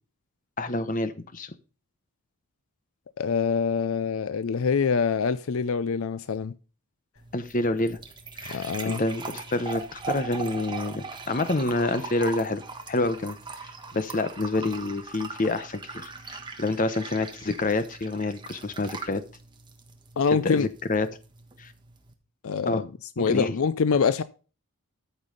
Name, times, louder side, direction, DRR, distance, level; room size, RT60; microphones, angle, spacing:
voice 1, 0.6-1.5 7.3-8.0 8.4-12.6 12.9-13.4 13.6-19.2 20.4-21.1 21.6-21.7 22.7-22.8 23.2-23.5, left 2 dB, 35° left, 0.8 m, -28 dB
voice 2, 3.2-6.5 8.5-9.0 20.2-20.7 22.4-22.9 23.2-24.2, left 5 dB, 65° left, 0.5 m, -25 dB
sound 1, 7.2-22.1, right 4 dB, 20° right, 1.3 m, -40 dB
13.5 x 5.5 x 3.9 m
head